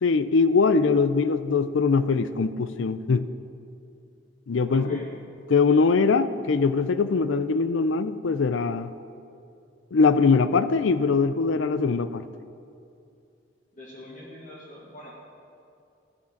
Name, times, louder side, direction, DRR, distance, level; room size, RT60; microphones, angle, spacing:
voice 1, 0.0-3.2 4.5-5.0 5.5-8.9 9.9-12.3, left 4 dB, 80° left, 13 dB, 0.5 m, -22 dB
voice 2, 4.7-5.1 13.7-15.1, left 1 dB, 40° left, -4 dB, 2.0 m, -44 dB
13.5 x 5.8 x 7.7 m, 2.6 s
head